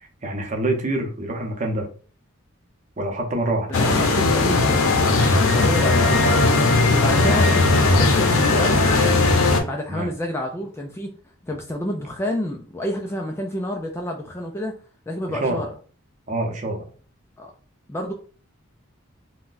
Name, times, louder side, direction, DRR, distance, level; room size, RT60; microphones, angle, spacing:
voice 1, 0.2-1.9 3.0-3.7 9.9-10.1 15.3-15.7 16.3-16.9, right 2 dB, 35° right, 0.7 m, -26 dB
sound 1, 3.7-9.6, left 3 dB, 90° left, 0.6 m, -18 dB
voice 2, 3.7-4.9 5.3-6.4 6.9-8.9 9.4-11.1 11.4-14.7 15.1-15.7 17.4-17.5 17.9-18.1, left 1 dB, 10° left, 0.3 m, -29 dB
3.8 x 2.2 x 2.5 m
head